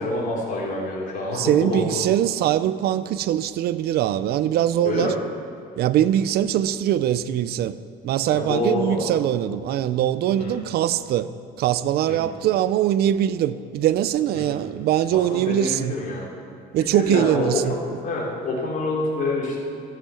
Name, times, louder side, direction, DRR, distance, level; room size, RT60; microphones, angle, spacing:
voice 1, 0.0-2.0 4.8-5.2 8.3-9.1 10.4-10.6 12.1-12.3 14.3-14.6 15.1-16.2 16.9-17.8 18.0-19.6, left 2 dB, 50° left, 3.7 m, -27 dB
voice 2, 1.3-5.1 5.8-7.8 8.0-11.3 11.6-16.0 16.7-17.8, right 11 dB, 70° right, 0.6 m, -22 dB
14.5 x 7.8 x 7.1 m
cardioid pair, 110°, 17 cm